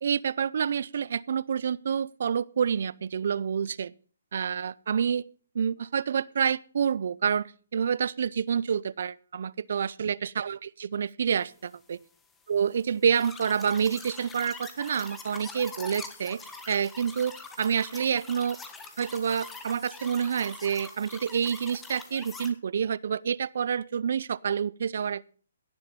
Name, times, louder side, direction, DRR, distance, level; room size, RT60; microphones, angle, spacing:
voice 1, 0.0-3.9 4.3-5.3 5.5-12.0 12.5-16.4 16.7-18.6 19.0-25.3, right 7 dB, 60° right, 0.5 m, -28 dB
sound 1, 13.1-22.5, left 4 dB, 10° left, 1.4 m, -44 dB
17.0 x 7.5 x 5.2 m
hypercardioid pair, 150°, 0 cm